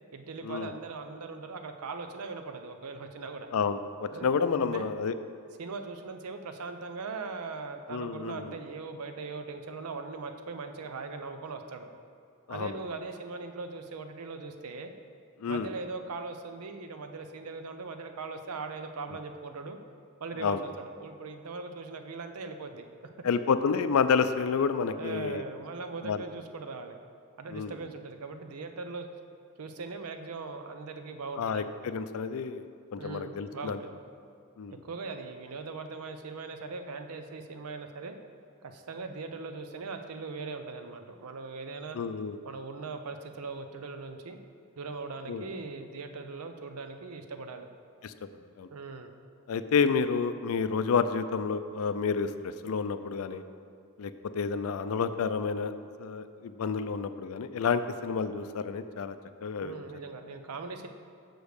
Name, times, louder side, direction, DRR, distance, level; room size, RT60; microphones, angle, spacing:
voice 1, 0.1-3.5 4.1-4.3 4.6-4.9 5.6-11.9 12.5-14.9 15.5-19.8 20.2-22.9 23.1-23.2 24.9-27.0 27.4-29.1 29.6-31.7 33.0-34.0 34.7-38.2 38.6-42.0 42.4-44.4 44.8-47.7 48.7-49.1 59.6-60.9, right 4 dB, 85° right, 7 dB, 0.6 m, -40 dB
voice 2, 3.5-5.1 7.9-8.5 12.5-12.8 15.4-15.7 20.4-20.6 23.2-25.4 26.0-26.2 27.5-27.7 31.4-32.6 32.9-33.8 34.6-34.8 41.9-42.4 45.3-45.5 48.0-48.1 48.6-48.7 49.5-53.4 54.0-55.7 56.0-59.2 59.4-59.7, left 5 dB, 70° left, 11 dB, 0.4 m, -29 dB
6.2 x 5.1 x 6.5 m, 2.3 s
head